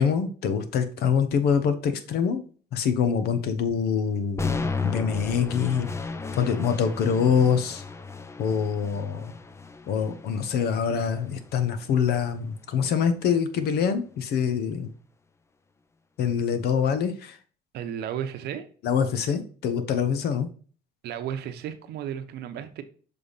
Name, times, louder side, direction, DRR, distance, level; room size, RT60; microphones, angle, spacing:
voice 1, 0.0-2.4 2.7-5.9 6.3-7.8 8.4-9.3 9.9-14.9 16.2-17.4 18.8-20.5, left 7 dB, 75° left, 0.9 m, -25 dB
sound 1, 4.4-12.4, left 4 dB, 15° left, 0.5 m, -34 dB
voice 2, 17.7-18.7 21.0-22.8, right 9 dB, 75° right, 0.8 m, -33 dB
6.7 x 3.5 x 4.0 m
cardioid pair, 110°, 17 cm